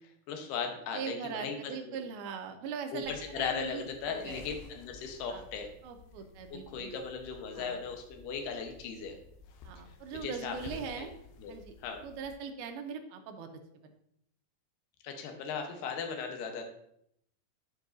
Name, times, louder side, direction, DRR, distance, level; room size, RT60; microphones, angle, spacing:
voice 1, 0.3-2.0 2.9-5.7 6.5-9.2 10.1-11.1 11.4-11.5 11.8-12.0 15.0-16.6, left 5 dB, 70° left, 4 dB, 2.2 m, -37 dB
voice 2, 0.9-4.4 5.3-5.4 5.8-6.9 7.6-7.7 9.6-11.1 11.5-11.8 12.0-13.9, right 6 dB, 85° right, 5 dB, 2.5 m, -41 dB
sound 1, 3.0-12.3, left 3 dB, 90° left, 2.6 m, -53 dB
10.5 x 5.4 x 2.5 m, 0.73 s
omnidirectional pair, 4.5 m